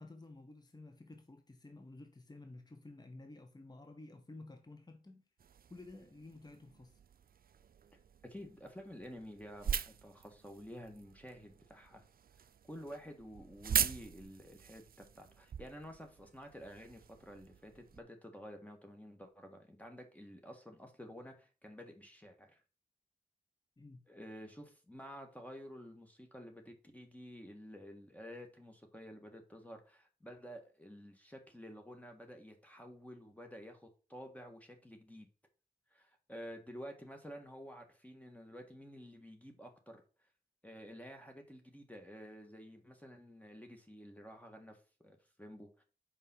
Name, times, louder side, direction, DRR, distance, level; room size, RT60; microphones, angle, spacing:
voice 1, 0.0-5.2 5.7-7.0 23.8-24.0, left 2 dB, 25° left, 1.0 m, -53 dB
sound 1, 5.4-18.0, right 8 dB, 65° right, 0.5 m, -42 dB
voice 2, 8.2-12.0 12.7-14.8 15.1-22.6 24.1-35.3 35.9-40.0 40.6-45.8, equal, 10° left, 1.6 m, -51 dB
5.4 x 5.0 x 5.6 m
cardioid pair, 45°, 16 cm